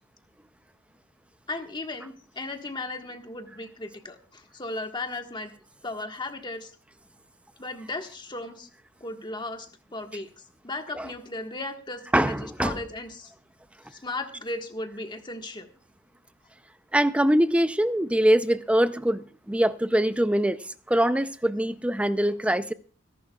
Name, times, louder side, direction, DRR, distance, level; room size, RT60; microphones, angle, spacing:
voice 1, 1.5-5.5 5.8-6.7 7.6-8.7 9.0-13.3 13.8-15.7, left 2 dB, 20° left, 1.4 m, -36 dB
voice 2, 12.1-12.8 16.9-22.7, right 1 dB, 5° right, 0.5 m, -23 dB
25.0 x 11.5 x 2.3 m
head